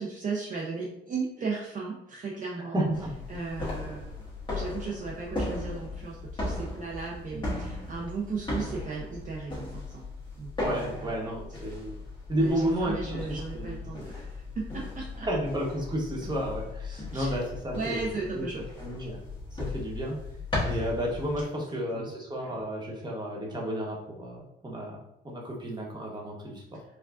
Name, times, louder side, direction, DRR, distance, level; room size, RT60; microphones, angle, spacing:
voice 1, 0.0-2.8 3.3-4.1 4.5-10.0 10.4-11.3 12.4-14.3 14.6-15.3 17.1-17.4 17.7-18.6 21.5-21.7 21.9-22.1 22.4-22.5, right 4 dB, 40° right, -3 dB, 0.6 m, -36 dB
voice 2, 2.6-3.1 7.3-7.4 10.6-11.9 12.3-14.0 15.2-19.2 19.5-20.2 20.6-25.0 25.2-26.8, equal, 20° right, -2 dB, 1.1 m, -32 dB
sound 1, 2.9-21.4, left 2 dB, 25° left, 1.5 m, -37 dB
4.6 x 2.3 x 2.4 m, 0.80 s
cardioid pair, 90°, 20 cm